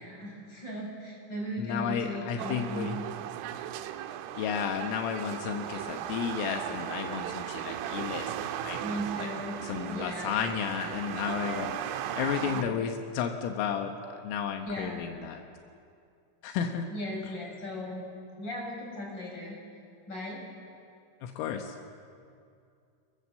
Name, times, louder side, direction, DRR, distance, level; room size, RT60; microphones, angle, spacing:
voice 1, 0.0-2.9 8.8-9.6 9.9-10.4 11.4-11.7 12.5-12.7 14.7-15.0 16.9-18.0 18.4-19.6 20.1-20.4, equal, 20° left, -2 dB, 7.0 m, -37 dB
voice 2, 1.6-3.0 4.4-9.3 9.6-15.4 16.4-16.9 21.2-21.8, left 8 dB, 80° left, 4 dB, 3.7 m, -33 dB
sound 1, 2.4-12.6, right 11 dB, 85° right, 3.4 m, -37 dB
27.5 x 21.5 x 7.5 m, 2.4 s
omnidirectional pair, 5.8 m